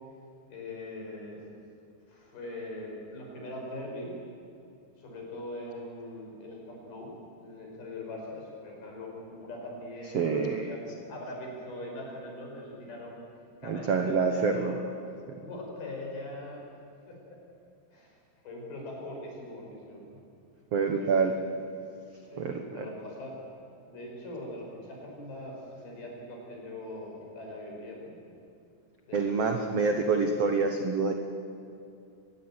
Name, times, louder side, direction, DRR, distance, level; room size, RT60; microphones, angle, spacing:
voice 1, 0.5-1.4 2.1-4.1 5.0-10.3 10.6-10.8 11.1-13.2 13.6-14.8 15.4-16.7 17.1-17.4 17.9-18.1 18.4-20.2 21.0-21.3 22.3-23.4 23.9-28.4 29.1-29.8, left 1 dB, 65° left, -1 dB, 7.6 m, -41 dB
voice 2, 10.1-10.7 13.6-14.7 20.7-21.3 22.4-22.8 29.1-31.1, right 4 dB, 70° right, 5 dB, 1.4 m, -27 dB
24.5 x 20.5 x 9.0 m, 2.5 s
omnidirectional pair, 4.8 m